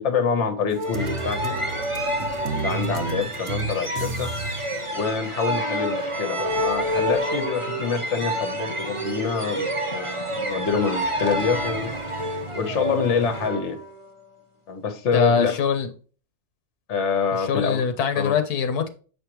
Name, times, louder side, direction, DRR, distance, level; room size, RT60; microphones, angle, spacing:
voice 1, 0.0-1.5 2.5-4.3 4.9-9.7 9.9-11.9 12.5-13.8 14.7-15.6 16.9-17.8 18.2-18.4, left 5 dB, 55° left, 1.4 m, -26 dB
sound 1, 0.7-4.8, right 3 dB, 55° right, 1.1 m, -32 dB
sound 2, 0.8-14.3, right 1 dB, 25° right, 0.9 m, -29 dB
sound 3, 1.9-13.5, left 1 dB, 40° left, 1.7 m, -42 dB
voice 2, 15.1-15.9 17.4-18.9, left 6 dB, 90° left, 1.4 m, -23 dB
7.4 x 5.1 x 3.0 m
omnidirectional pair, 1.6 m